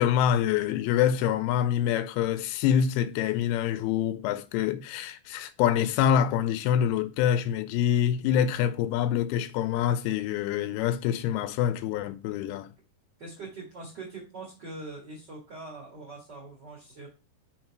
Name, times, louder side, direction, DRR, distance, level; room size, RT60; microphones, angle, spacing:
voice 1, 0.0-12.7, left 10 dB, 90° left, 2.5 m, -26 dB
voice 2, 13.2-17.1, right 3 dB, 50° right, 1.3 m, -42 dB
5.7 x 3.9 x 4.5 m
omnidirectional pair, 4.4 m